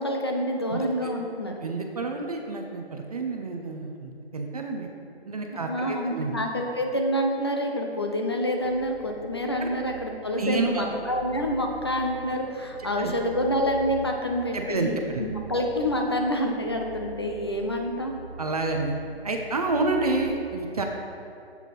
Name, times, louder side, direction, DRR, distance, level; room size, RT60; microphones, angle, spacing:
voice 1, 0.0-1.5 5.5-18.1, equal, 25° left, 1 dB, 0.4 m, -27 dB
voice 2, 0.7-1.1 1.6-4.9 5.3-6.3 9.6-9.7 10.4-10.9 13.0-13.1 14.5-15.2 18.4-18.9 19.2-20.9, right 3 dB, 35° right, 3 dB, 0.5 m, -29 dB
sound 1, 8.6-20.3, right 2 dB, 10° right, 1.2 m, -44 dB
7.2 x 5.8 x 4.0 m, 2.6 s
hypercardioid pair, 160°, 32 cm